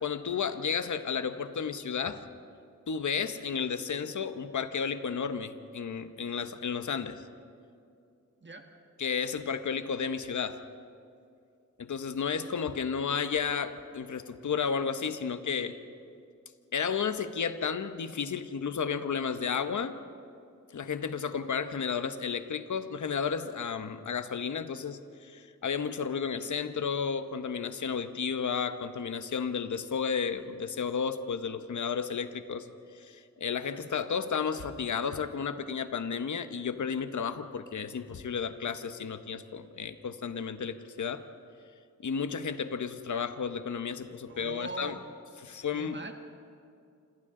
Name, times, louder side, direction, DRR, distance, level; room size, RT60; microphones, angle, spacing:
voice 1, 0.0-2.2 2.9-7.2 9.0-10.6 11.8-15.7 16.7-20.0 20.7-32.7 32.9-41.2 42.0-44.9 45.4-46.0, left 6 dB, 75° left, 10 dB, 1.0 m, -32 dB
voice 2, 44.3-45.0 45.7-46.1, right 2 dB, 40° right, 4 dB, 1.5 m, -41 dB
27.5 x 27.0 x 3.8 m, 2.5 s
wide cardioid pair, 100°, 30 cm